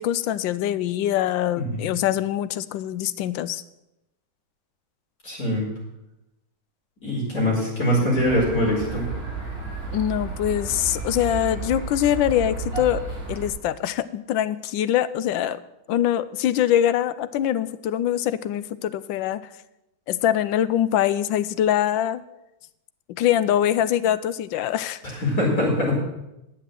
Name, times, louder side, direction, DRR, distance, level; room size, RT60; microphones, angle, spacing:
voice 1, 0.0-3.6 9.9-13.0 13.3-15.6 15.9-19.4 20.1-22.2 23.1-25.0, left 11 dB, 75° left, 15 dB, 1.2 m, -23 dB
voice 2, 5.2-5.6 7.0-9.0 25.0-26.0, left 1 dB, 40° left, -4 dB, 5.0 m, -23 dB
sound 1, 8.2-13.5, right 4 dB, 35° right, 4.3 m, -32 dB
10.5 x 7.4 x 7.6 m, 0.89 s
omnidirectional pair, 2.2 m